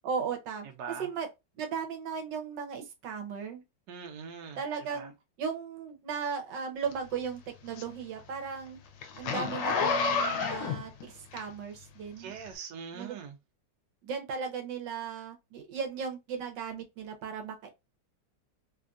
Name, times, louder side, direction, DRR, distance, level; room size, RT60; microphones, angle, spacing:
voice 1, 0.0-0.7 1.0-1.3 1.6-3.6 4.6-5.1 5.4-8.8 9.1-12.3 12.9-13.1 14.0-17.7, right 6 dB, 85° right, 1.4 m, -36 dB
voice 2, 3.9-5.1 12.2-13.3, right 6 dB, 70° right, 1.2 m, -42 dB
Zipper (clothing), 6.9-11.9 12.4-12.5, left 5 dB, 90° left, 1.3 m, -31 dB
3.4 x 2.3 x 2.5 m
omnidirectional pair, 1.9 m